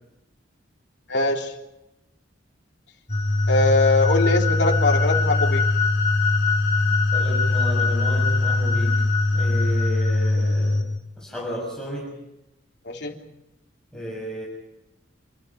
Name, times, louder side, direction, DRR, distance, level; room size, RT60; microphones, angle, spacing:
voice 1, 1.1-1.5 3.5-5.7 12.8-13.1, left 2 dB, 65° left, 1 dB, 3.3 m, -21 dB
sound 1, 3.1-10.8, left 2 dB, 35° left, 7.4 m, -21 dB
voice 2, 6.8-10.8 11.2-12.2 13.9-14.5, equal, 5° left, -4 dB, 6.4 m, -33 dB
28.0 x 13.0 x 9.7 m, 0.88 s
head